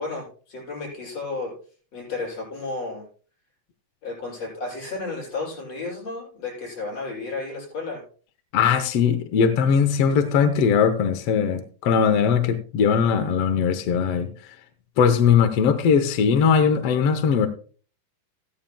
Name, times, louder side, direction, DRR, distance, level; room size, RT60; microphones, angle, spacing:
voice 1, 0.0-1.5 1.9-3.1 4.0-8.0, left 3 dB, 50° left, -4 dB, 8.6 m, -32 dB
voice 2, 8.5-14.3 15.0-17.5, left 6 dB, 70° left, 8 dB, 1.5 m, -20 dB
16.0 x 13.0 x 2.3 m, 0.41 s
omnidirectional pair, 3.8 m